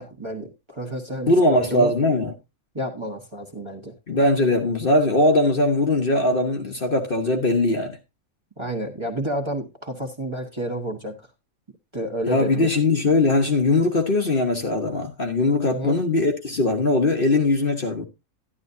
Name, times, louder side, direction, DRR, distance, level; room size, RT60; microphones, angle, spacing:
voice 1, 0.0-1.9 2.7-3.9 8.6-11.3 11.9-12.7 15.6-16.0, right 1 dB, 20° right, 1.4 m, -30 dB
voice 2, 1.3-2.3 4.1-8.0 12.3-18.0, left 2 dB, 40° left, 1.2 m, -20 dB
11.5 x 11.0 x 2.7 m
omnidirectional pair, 1.5 m